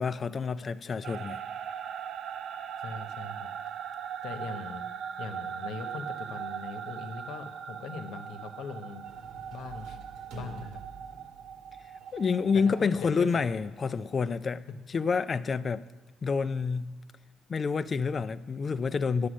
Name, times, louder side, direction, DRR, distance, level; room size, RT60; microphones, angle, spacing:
voice 1, 0.0-1.4 12.1-15.8 16.2-17.0 17.5-19.3, left 5 dB, 30° left, 0.3 m, -28 dB
sound 1, 1.0-12.8, right 8 dB, 55° right, 0.4 m, -40 dB
voice 2, 2.8-3.5 4.2-4.8 5.2-9.1 9.5-10.0 10.3-10.8 12.5-13.4 14.7-14.8, left 4 dB, 85° left, 1.0 m, -41 dB
sound 2, 9.0-14.5, right 2 dB, 90° right, 1.7 m, -49 dB
9.9 x 8.6 x 6.2 m
cardioid pair, 150°, 0 cm